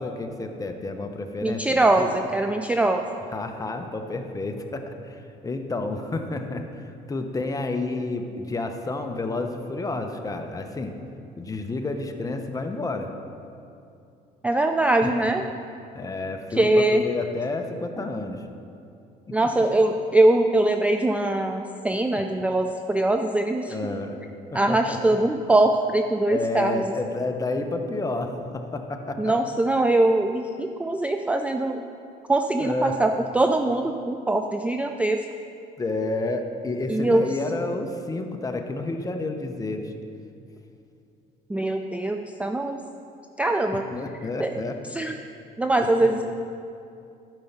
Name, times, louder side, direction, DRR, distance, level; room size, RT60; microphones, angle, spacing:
voice 1, 0.0-2.1 3.3-10.9 11.4-13.1 15.0-15.3 15.9-18.4 19.3-19.4 23.7-24.2 24.5-25.2 26.3-29.3 32.6-33.0 35.8-39.9 43.9-44.8 45.8-46.1, left 2 dB, 20° left, 5 dB, 0.8 m, -30 dB
voice 2, 1.4-3.0 14.4-15.4 16.5-17.0 19.3-23.7 24.5-26.9 29.2-31.8 32.3-35.2 36.9-37.3 41.5-42.8 43.4-43.8 44.4-44.6 44.9-45.1 45.6-46.2, right 2 dB, 10° right, 5 dB, 0.4 m, -22 dB
12.0 x 5.3 x 5.9 m, 2.6 s
cardioid pair, 110°, 17 cm